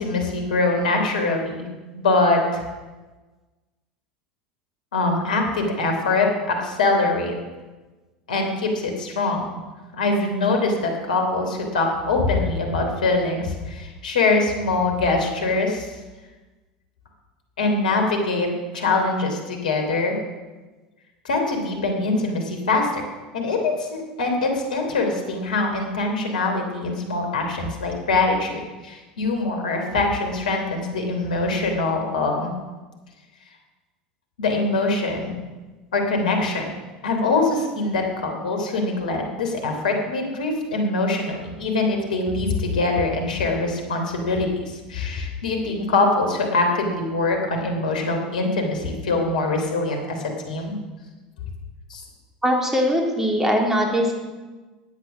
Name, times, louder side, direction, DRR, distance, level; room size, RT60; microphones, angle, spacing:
voice 1, 0.0-1.6 1.9-2.6 4.9-7.3 8.3-9.6 9.9-15.9 17.6-18.5 18.7-20.2 21.2-23.0 23.3-32.5 34.4-35.4 35.9-36.7 37.0-50.8 51.9-52.0, left 3 dB, 80° left, 3 dB, 3.2 m, -23 dB
voice 2, 52.4-54.2, equal, 10° right, 1 dB, 3.4 m, -21 dB
15.5 x 9.5 x 6.1 m, 1.2 s
hypercardioid pair, 80°, 4 cm